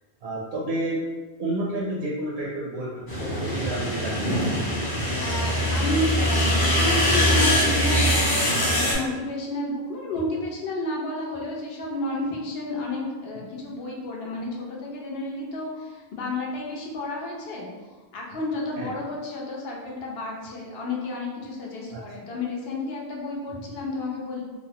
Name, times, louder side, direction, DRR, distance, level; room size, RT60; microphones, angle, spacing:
voice 1, 0.2-1.0 1.4-4.3 18.8-18.9 21.9-22.0, right 1 dB, 75° right, -4 dB, 0.8 m, -30 dB
sound 1, 3.1-8.9, equal, 25° left, 0.5 m, -22 dB
voice 2, 5.2-17.7 18.1-24.4, left 2 dB, 70° left, -2 dB, 0.8 m, -31 dB
3.0 x 2.0 x 2.8 m, 1.3 s
omnidirectional pair, 1.1 m